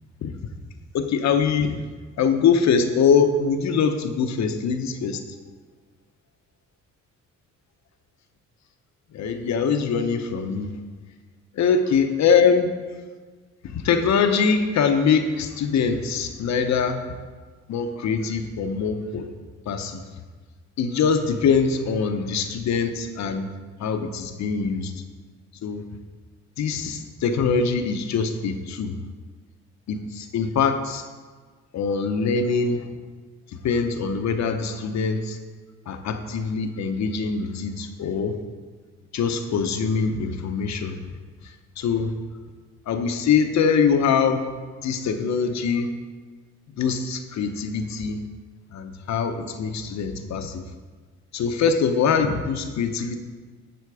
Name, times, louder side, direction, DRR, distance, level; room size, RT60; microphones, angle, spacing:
voice 1, 0.9-1.8 2.2-5.2 9.1-10.7 11.5-12.7 13.6-17.0 17.7-19.3 19.7-20.0 20.8-23.5 23.8-24.9 25.6-25.8 26.6-29.0 29.9-31.0 31.7-32.8 33.6-35.4 35.9-38.3 39.1-41.0 41.8-42.1 42.9-44.5 44.8-45.9 46.8-48.2 48.7-50.6 51.3-53.2, left 6 dB, 65° left, 7 dB, 0.9 m, -23 dB
11.0 x 4.5 x 4.8 m, 1.5 s
cardioid pair, 90°, 30 cm